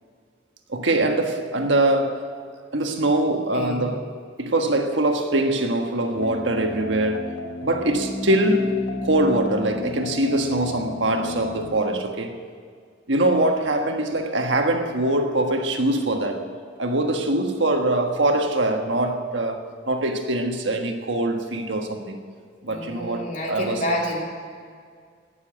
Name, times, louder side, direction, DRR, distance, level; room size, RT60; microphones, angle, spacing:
voice 1, 0.7-2.3 2.7-4.1 4.4-12.4 13.1-16.5 16.8-22.2 22.6-23.8, right 1 dB, 80° right, 1.4 m, -23 dB
voice 2, 3.5-3.9 22.7-24.2, equal, 45° left, 3.1 m, -28 dB
sound 1, 6.2-11.8, left 2 dB, 75° left, 1.3 m, -32 dB
17.5 x 7.2 x 9.0 m
head